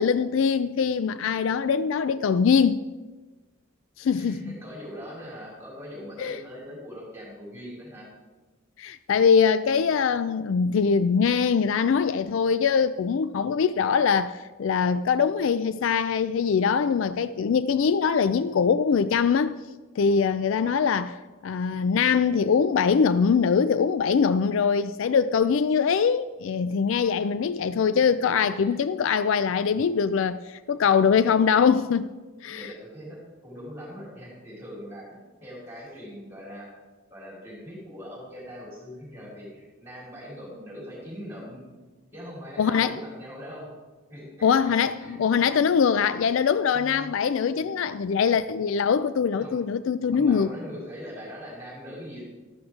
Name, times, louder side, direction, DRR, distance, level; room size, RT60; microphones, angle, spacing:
voice 1, 0.0-2.8 4.0-4.5 6.2-6.4 8.8-19.6 20.0-21.1 21.4-32.1 32.4-32.7 42.6-43.0 44.4-50.5, left 6 dB, 65° left, 0.3 m, -23 dB
voice 2, 4.1-8.1 28.4-28.8 32.5-36.7 37.1-41.6 42.1-43.7 44.1-45.2 49.4-49.6 50.1-52.2, equal, 10° right, 4.3 m, -41 dB
13.5 x 12.0 x 3.7 m
head